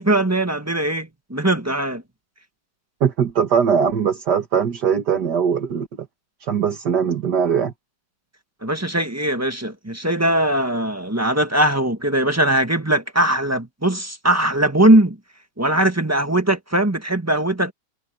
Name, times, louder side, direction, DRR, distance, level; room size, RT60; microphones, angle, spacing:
voice 1, 0.0-2.0 8.6-15.2 15.6-17.7, right 1 dB, 10° right, 1.2 m, -20 dB
voice 2, 3.0-6.1 6.4-7.7, right 7 dB, 65° right, 2.1 m, -20 dB
omnidirectional pair, 2.0 m